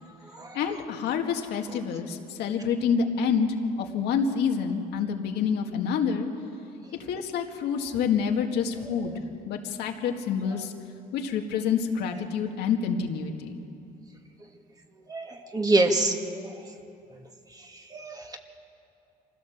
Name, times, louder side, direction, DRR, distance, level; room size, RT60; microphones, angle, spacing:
voice 1, 0.5-3.5 3.8-6.3 7.1-9.1 9.5-10.7 11.1-13.6, left 6 dB, 80° left, 3 dB, 1.9 m, -27 dB
voice 2, 15.1-16.5 17.9-18.4, right 2 dB, 20° right, 4 dB, 1.8 m, -26 dB
24.5 x 16.0 x 7.2 m, 2.7 s
cardioid pair, 110°, 17 cm